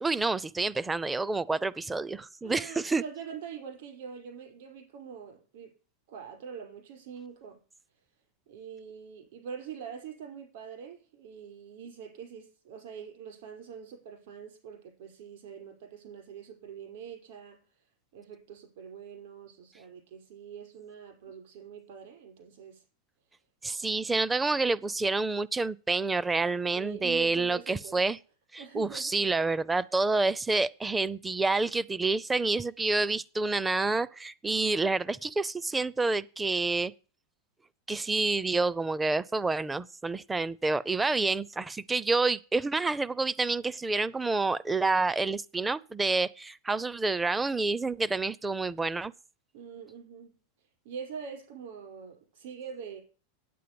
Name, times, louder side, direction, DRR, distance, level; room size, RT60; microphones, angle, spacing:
voice 1, 0.0-3.0 23.6-28.2 28.5-36.9 37.9-49.1, right 3 dB, 10° right, 0.5 m, -28 dB
voice 2, 2.4-5.7 6.1-7.6 8.5-17.6 18.1-22.8 26.7-28.0 28.6-29.2 49.5-50.3 50.9-53.0, right 7 dB, 65° right, 5.2 m, -44 dB
9.2 x 8.5 x 6.9 m
supercardioid pair, 140°, 0 cm